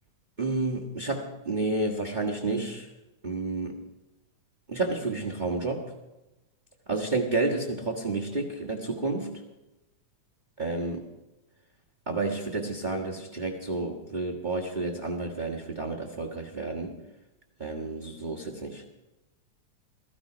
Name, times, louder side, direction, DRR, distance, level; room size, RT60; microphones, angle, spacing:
voice 1, 0.4-2.9 3.2-3.8 4.7-5.9 6.9-9.4 10.6-11.0 12.1-17.0 17.6-18.8, right 2 dB, 50° right, 0 dB, 0.5 m, -30 dB
17.0 x 14.5 x 5.0 m, 1.0 s
omnidirectional pair, 3.6 m